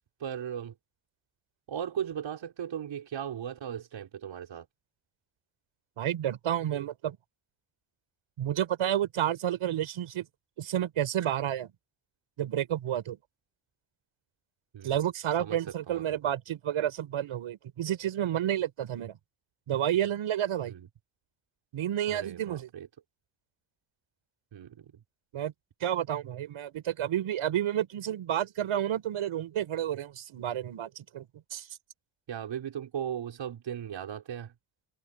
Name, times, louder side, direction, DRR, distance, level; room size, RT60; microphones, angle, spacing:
voice 1, 0.2-0.7 1.7-4.7 14.7-15.0 15.4-15.6 15.9-16.0 20.7-20.9 22.1-22.9 24.5-24.9 32.3-34.5, right 9 dB, 65° right, 5.9 m, -37 dB
voice 2, 6.0-7.2 8.4-10.2 10.6-11.7 12.4-13.2 14.8-19.2 19.7-20.7 21.7-22.7 25.3-25.5 25.8-31.7, right 11 dB, 85° right, 6.7 m, -30 dB
wide cardioid pair, 165°, 48 cm